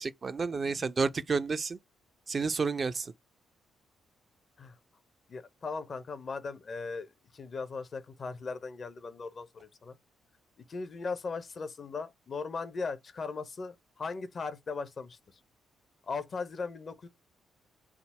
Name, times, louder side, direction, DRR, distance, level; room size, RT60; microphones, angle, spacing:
voice 1, 0.0-1.8 2.3-3.1, right 4 dB, 40° right, 0.4 m, -30 dB
voice 2, 5.3-10.0 10.7-15.4 16.0-17.1, left 4 dB, 45° left, 0.6 m, -38 dB
3.5 x 2.0 x 4.1 m
hypercardioid pair, 40°, 0 cm